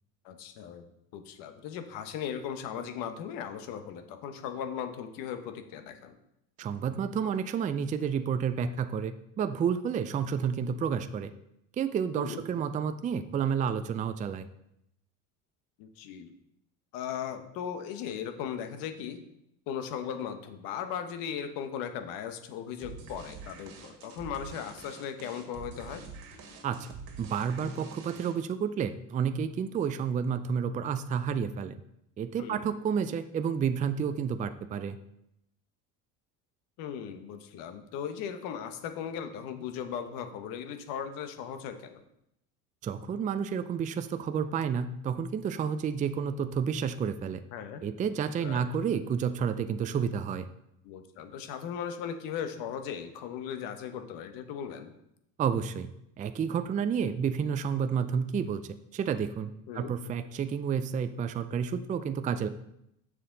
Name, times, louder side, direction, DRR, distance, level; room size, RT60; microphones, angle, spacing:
voice 1, 0.2-0.8 1.1-6.1 12.2-12.4 15.8-16.3 16.9-19.2 19.7-26.0 32.4-32.7 36.8-42.0 47.5-47.8 48.4-48.7 50.8-54.9 59.7-59.9, left 8 dB, 70° left, 8 dB, 1.1 m, -37 dB
voice 2, 6.6-11.3 11.8-14.5 26.6-26.9 27.2-31.8 32.2-35.0 42.8-47.4 47.8-50.5 55.4-55.9 56.2-62.5, right 7 dB, 20° right, 10 dB, 0.4 m, -30 dB
sound 1, 22.8-28.6, right 4 dB, 70° right, 1.9 m, -46 dB
7.4 x 6.6 x 3.8 m, 0.80 s
supercardioid pair, 105°, 36 cm